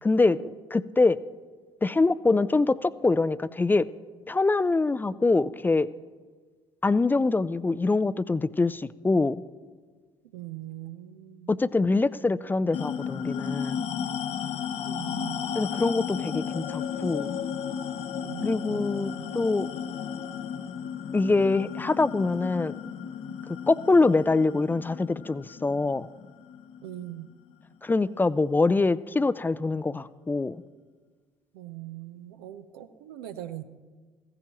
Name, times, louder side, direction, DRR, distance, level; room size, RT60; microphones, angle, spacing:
voice 1, 0.0-1.2 1.8-3.9 4.3-5.9 6.8-9.4 11.5-13.8 15.5-17.3 18.4-19.7 21.1-22.7 23.7-26.1 27.8-30.6, left 3 dB, 15° left, 17 dB, 0.4 m, -24 dB
voice 2, 10.3-11.6 14.9-15.6 18.2-19.3 26.8-27.3 31.5-33.6, right 13 dB, 80° right, 9 dB, 0.6 m, -41 dB
sound 1, 12.7-27.6, left 7 dB, 55° left, 0.7 m, -34 dB
15.0 x 14.5 x 3.0 m, 1.5 s
hypercardioid pair, 60°, 13 cm